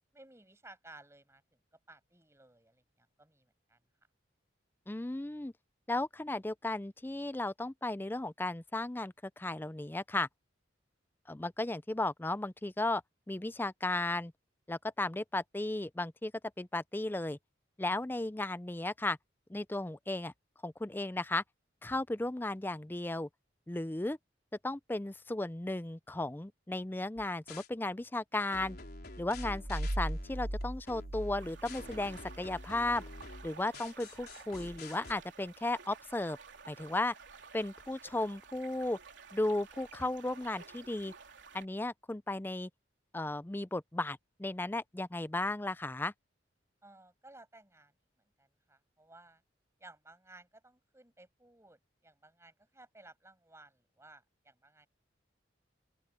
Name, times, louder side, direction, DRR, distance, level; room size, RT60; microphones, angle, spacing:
voice 1, 0.1-1.4 1.9-3.8 46.8-47.9 48.4-49.4 49.8-54.9, right 2 dB, 15° right, 6.2 m, -57 dB
voice 2, 4.9-5.5 5.9-10.3 11.3-13.0 13.3-14.3 14.7-16.3 16.6-17.4 17.8-19.2 19.5-20.3 20.6-21.4 21.8-23.3 23.7-24.2 24.6-28.8 29.2-33.0 33.4-36.4 36.7-37.1 37.5-39.0 39.3-41.1 41.5-42.7 43.1-46.1, left 2 dB, 10° left, 0.4 m, -35 dB
sound 1, 27.2-27.7 28.5-35.1, left 2 dB, 55° left, 4.6 m, -48 dB
sound 2, 29.3-32.0, right 1 dB, 50° right, 1.3 m, -37 dB
sound 3, 31.4-41.7, right 5 dB, 75° right, 3.4 m, -53 dB
open air
head